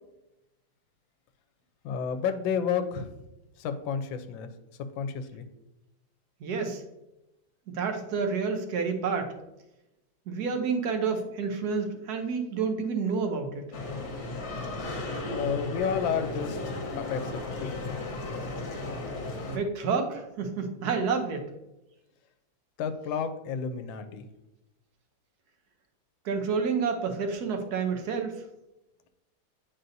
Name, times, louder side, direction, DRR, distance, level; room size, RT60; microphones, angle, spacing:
voice 1, 1.8-3.2 3.6-4.5 5.0-5.5 15.3-16.8 17.1-17.4 17.9-18.2 22.8-24.2, left 7 dB, 85° left, 9 dB, 1.4 m, -31 dB
voice 2, 6.4-6.8 7.7-9.3 10.3-13.7 19.5-21.5 26.2-28.4, right 5 dB, 65° right, 5 dB, 1.2 m, -29 dB
sound 1, 13.7-19.6, left 2 dB, 55° left, 1.4 m, -35 dB
9.1 x 4.1 x 2.6 m, 0.94 s
omnidirectional pair, 2.0 m